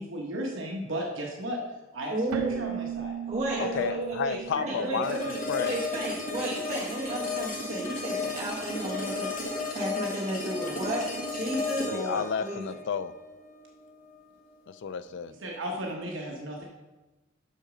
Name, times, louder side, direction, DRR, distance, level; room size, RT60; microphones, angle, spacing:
voice 1, 0.0-1.6 1.9-3.1 3.5-4.0 4.8-5.2 15.4-16.6, equal, 60° right, -1 dB, 1.1 m, -35 dB
voice 2, 2.1-2.6 3.3-9.3 9.7-12.6, right 1 dB, 35° right, -6 dB, 1.2 m, -33 dB
Keyboard (musical), 2.3-5.9, right 10 dB, 90° right, 0.4 m, -37 dB
voice 3, 3.6-5.7 11.9-13.1 14.7-15.3, left 6 dB, 60° left, 14 dB, 0.4 m, -32 dB
sound 1, 5.0-14.1, left 3 dB, 40° left, 1.4 m, -34 dB
6.4 x 6.3 x 5.0 m, 1.1 s
head